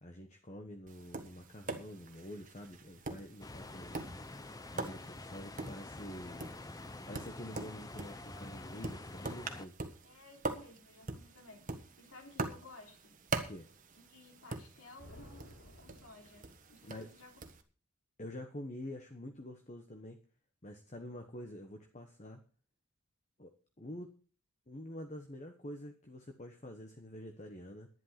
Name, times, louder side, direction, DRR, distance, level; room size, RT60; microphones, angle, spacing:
voice 1, 0.0-4.2 4.7-6.5 7.1-9.8 13.3-13.7 16.8-17.1 18.2-20.2 20.6-22.4 23.4-23.5 23.8-24.1 24.7-27.9, left 1 dB, 30° left, 5 dB, 1.2 m, -47 dB
Tap, 0.9-17.6, right 3 dB, 35° right, 1.4 m, -44 dB
sound 1, 3.4-9.7, left 2 dB, 15° left, 0.6 m, -47 dB
voice 2, 10.0-11.6 12.0-13.1 14.1-17.4, left 2 dB, 75° left, 2 dB, 3.5 m, -56 dB
sound 2, 15.0-16.9, equal, 55° left, 4.3 m, -56 dB
11.0 x 11.0 x 5.8 m, 0.38 s
head